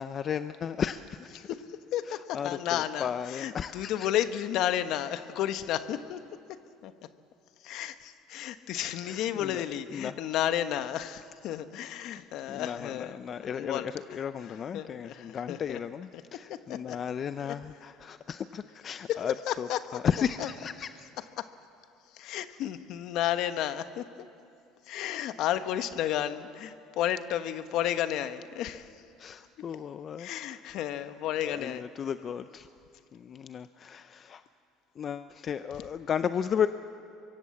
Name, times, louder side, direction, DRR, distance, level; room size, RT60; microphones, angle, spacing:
voice 1, 0.0-1.4 2.1-4.1 9.0-9.6 9.9-10.1 12.5-21.1 29.2-30.6 31.4-32.7 33.1-34.4 35.0-36.7, left 8 dB, 40° left, 12 dB, 0.6 m, -34 dB
voice 2, 1.3-7.1 7.6-15.8 16.3-17.0 17.4-17.6 19.1-20.5 21.2-21.6 22.1-24.3 24.9-29.0 29.8-29.9 30.2-31.9 36.2-36.3, left 11 dB, 65° left, 11 dB, 1.1 m, -33 dB
24.0 x 23.5 x 7.7 m, 2.6 s
supercardioid pair, 105°, 0 cm